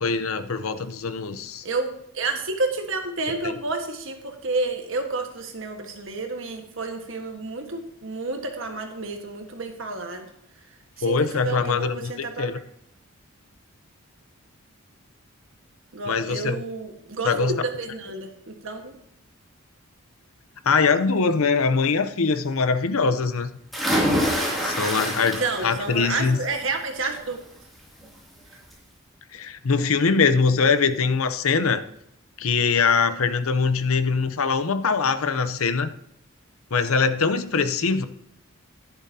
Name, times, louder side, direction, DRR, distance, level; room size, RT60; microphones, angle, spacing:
voice 1, 0.0-1.6 3.4-3.5 11.0-12.6 16.1-16.6 17.2-17.6 20.7-23.5 24.6-26.4 29.3-31.8 32.4-35.9 36.7-38.0, left 5 dB, 75° left, 11 dB, 0.7 m, -22 dB
voice 2, 1.6-10.3 11.0-12.5 15.9-18.9 25.4-27.4, right 3 dB, 60° right, 4 dB, 1.5 m, -30 dB
sound 1, 23.7-25.8 26.2-26.6 28.0-28.1 28.5-28.6, equal, ahead, 2.7 m, -25 dB
11.5 x 11.0 x 2.8 m, 0.77 s
head